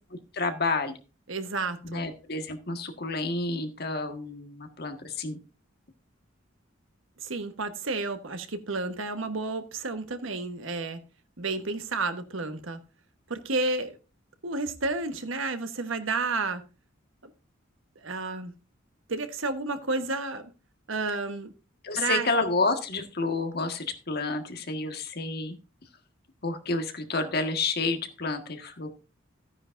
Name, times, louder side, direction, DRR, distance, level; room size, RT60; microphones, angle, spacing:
voice 1, 0.3-0.9 1.8-5.4 21.8-25.6 26.4-28.9, left 3 dB, 55° left, 1.6 m, -30 dB
voice 2, 1.3-2.0 7.2-11.0 11.4-12.8 13.3-14.0 14.4-16.6 17.2-17.3 18.0-18.5 19.1-20.5 20.9-21.5 22.0-22.3, right 3 dB, 90° right, 1.3 m, -31 dB
14.0 x 9.7 x 2.6 m
head